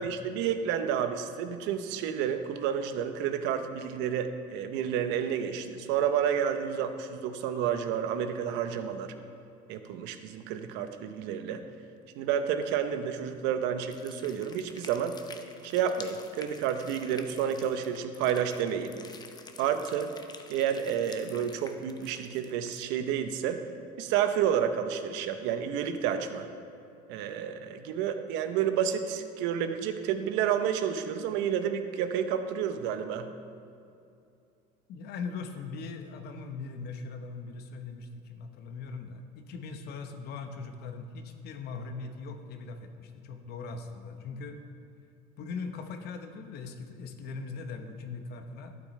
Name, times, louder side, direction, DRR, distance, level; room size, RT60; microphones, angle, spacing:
voice 1, 0.0-9.1 9.7-11.6 12.2-15.2 15.6-18.9 19.6-20.1 20.5-23.6 24.0-26.5 27.1-33.3, right 8 dB, 70° right, 8 dB, 0.8 m, -30 dB
sound 1, 13.8-22.8, left 4 dB, 20° left, 0.7 m, -49 dB
voice 2, 34.9-44.6 45.4-48.8, left 4 dB, 60° left, 7 dB, 1.0 m, -40 dB
12.0 x 8.5 x 3.2 m, 2.5 s
supercardioid pair, 100°, 19 cm